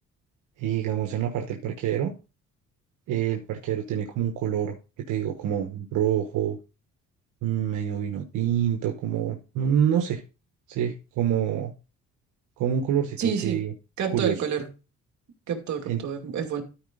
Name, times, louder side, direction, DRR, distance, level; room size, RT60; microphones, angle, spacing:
voice 1, 0.6-2.1 3.1-4.7 5.1-6.6 7.4-10.2 10.7-11.7 12.6-13.7 14.1-14.3 15.9-16.0, right 9 dB, 90° right, 1.2 m, -26 dB
voice 2, 13.2-13.6 14.0-14.7 15.5-16.6, right 7 dB, 65° right, 2.4 m, -28 dB
13.0 x 4.8 x 3.8 m
cardioid pair, 90°, 30 cm